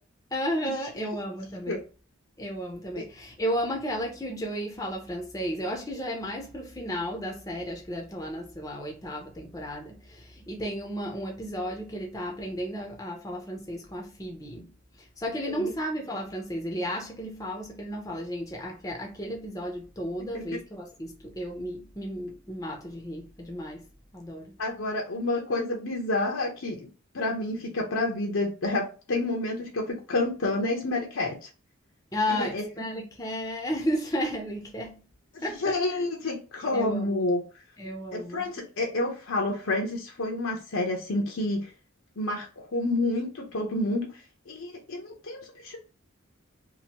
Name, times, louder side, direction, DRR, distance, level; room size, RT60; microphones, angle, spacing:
voice 1, 0.3-1.8 2.4-14.7 15.2-23.8 24.1-24.5 32.1-35.0 35.4-36.0 36.7-37.3 37.8-38.5, equal, 15° left, 0.5 m, -33 dB
voice 2, 24.6-26.9 27.1-31.4 32.3-32.7 35.3-37.4 38.1-41.7 42.2-44.1 44.5-45.8, left 2 dB, 85° left, 0.8 m, -29 dB
2.9 x 2.6 x 2.8 m
head